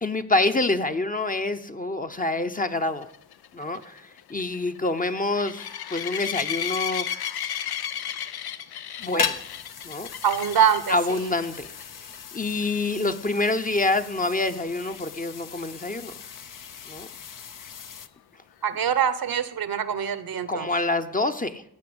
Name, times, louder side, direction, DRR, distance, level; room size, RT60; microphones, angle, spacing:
voice 1, 0.0-3.1 3.5-7.1 9.0-9.4 9.8-10.1 10.9-11.7 12.3-16.1 16.9-17.1 20.5-21.6, left 2 dB, 20° left, 8 dB, 0.8 m, -26 dB
sound 1, 3.0-11.0 11.5-11.8 12.1-12.2 12.6-12.7 16.3-16.4, left 9 dB, 90° left, 0.6 m, -33 dB
sound 2, 9.0-18.1, left 6 dB, 60° left, 0.8 m, -37 dB
voice 2, 10.2-11.4 18.6-20.7, right 8 dB, 70° right, 14 dB, 1.0 m, -24 dB
16.0 x 5.9 x 7.9 m, 0.79 s
cardioid pair, 65°, 37 cm